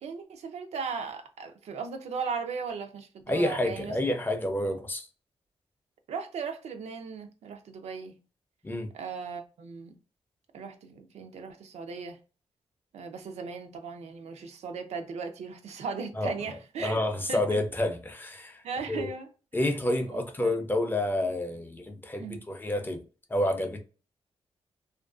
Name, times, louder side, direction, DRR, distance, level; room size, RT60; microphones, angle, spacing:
voice 1, 0.0-4.0 6.1-8.2 8.9-10.0 10.5-12.2 12.9-17.0 17.3-17.6 18.6-19.3 19.6-19.7 20.1-20.6 22.2-22.5, right 5 dB, 85° right, 0.5 m, -37 dB
voice 2, 3.3-5.1 8.6-8.9 16.1-16.3 16.8-19.1 19.5-23.0 23.3-23.8, left 1 dB, 20° left, 0.5 m, -29 dB
2.5 x 2.2 x 2.3 m
wide cardioid pair, 105°, 11 cm